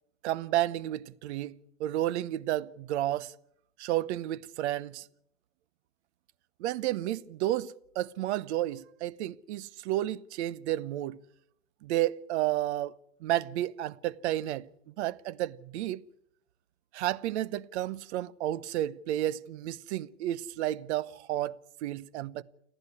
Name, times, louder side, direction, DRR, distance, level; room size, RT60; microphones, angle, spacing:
voice 1, 0.2-3.3 3.8-5.0 6.6-11.2 11.8-12.9 13.2-14.7 15.0-16.0 16.9-22.4, right 14 dB, 65° right, 1.0 m, -31 dB
29.5 x 10.5 x 9.7 m
hypercardioid pair, 120°, 37 cm